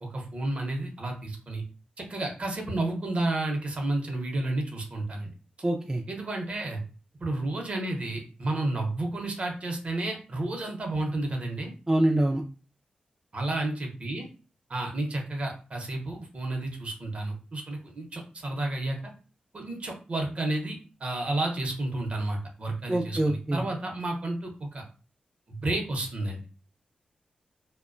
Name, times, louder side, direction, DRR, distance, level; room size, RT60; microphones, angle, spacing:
voice 1, 0.0-1.6 2.0-5.3 6.1-6.8 7.2-11.7 13.3-14.3 14.7-19.1 19.5-24.8 25.5-26.4, right 2 dB, 50° right, 2 dB, 0.7 m, -31 dB
voice 2, 5.6-6.0 11.9-12.4 22.9-23.6, right 1 dB, 20° right, 1 dB, 0.3 m, -25 dB
2.8 x 2.1 x 2.4 m, 0.35 s
wide cardioid pair, 95°, 3 cm